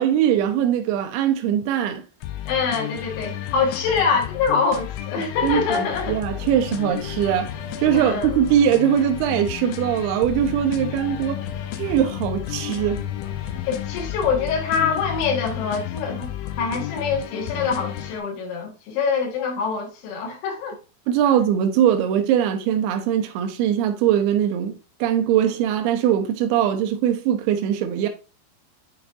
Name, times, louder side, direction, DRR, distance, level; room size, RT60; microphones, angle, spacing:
voice 1, 0.0-2.0 5.4-7.5 7.8-11.4 11.8-13.0 21.1-28.1, right 10 dB, 85° right, 2.3 m, -21 dB
sound 1, 2.2-18.2, left 12 dB, 90° left, 3.1 m, -32 dB
voice 2, 2.5-6.2 7.9-8.4 13.7-16.3 16.6-20.8, left 5 dB, 75° left, 3.5 m, -24 dB
Run, 5.3-15.1, left 5 dB, 60° left, 2.2 m, -43 dB
9.8 x 4.3 x 2.5 m
omnidirectional pair, 5.6 m